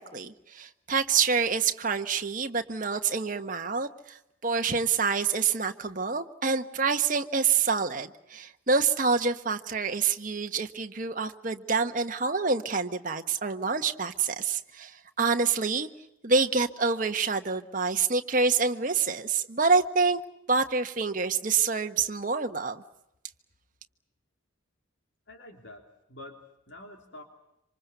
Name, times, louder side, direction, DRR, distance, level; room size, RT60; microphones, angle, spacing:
voice 1, 0.0-15.9 16.2-20.2 20.5-22.8, right 5 dB, 40° right, 6 dB, 1.3 m, -27 dB
voice 2, 25.3-27.2, left 1 dB, 65° left, 3 dB, 3.1 m, -47 dB
27.0 x 26.0 x 6.9 m, 0.86 s
head